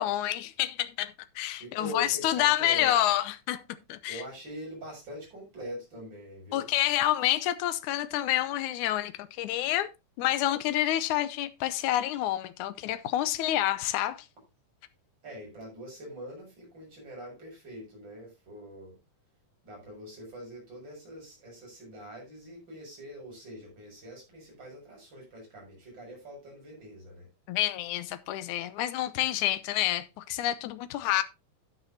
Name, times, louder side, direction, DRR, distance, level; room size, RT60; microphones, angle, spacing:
voice 1, 0.0-3.6 3.9-4.2 6.5-9.9 10.2-14.3 27.5-31.2, left 13 dB, 80° left, 2.2 m, -28 dB
voice 2, 1.6-2.9 4.1-6.7 15.2-19.0 19.6-27.3, equal, 35° right, 7.3 m, -43 dB
12.5 x 9.8 x 2.8 m
omnidirectional pair, 3.5 m